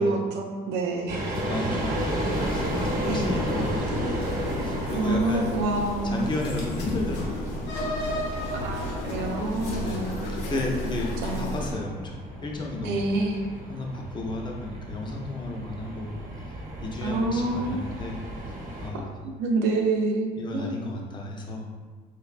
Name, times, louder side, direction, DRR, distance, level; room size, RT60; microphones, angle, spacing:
voice 1, 0.0-1.4 3.1-3.3 5.0-6.2 8.5-10.3 11.2-11.6 12.8-13.5 17.0-17.9 19.4-20.7, right 2 dB, 90° right, 1 dB, 0.5 m, -27 dB
sound 1, 1.1-18.9, right 1 dB, 50° right, 0.9 m, -34 dB
voice 2, 1.3-4.2 4.6-5.6 6.0-7.6 9.8-13.1 13.7-19.1 20.4-21.7, left 2 dB, 25° left, 0 dB, 0.6 m, -33 dB
sound 2, 2.3-11.7, left 1 dB, 80° left, 0.7 m, -33 dB
3.3 x 3.3 x 2.4 m, 1.4 s
cardioid pair, 110°, 17 cm